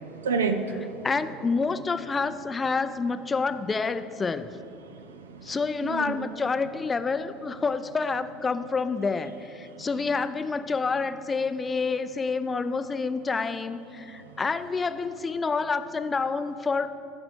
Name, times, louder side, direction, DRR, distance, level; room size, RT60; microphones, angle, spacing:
voice 1, 0.2-1.1 4.8-5.5 5.8-6.3 9.7-9.9 14.1-14.3, right 4 dB, 75° right, 8 dB, 0.5 m, -31 dB
voice 2, 1.0-4.5 5.4-16.9, left 4 dB, 20° left, 12 dB, 0.5 m, -28 dB
13.0 x 4.9 x 6.7 m, 2.6 s
figure-of-eight pair, 65°, 0 cm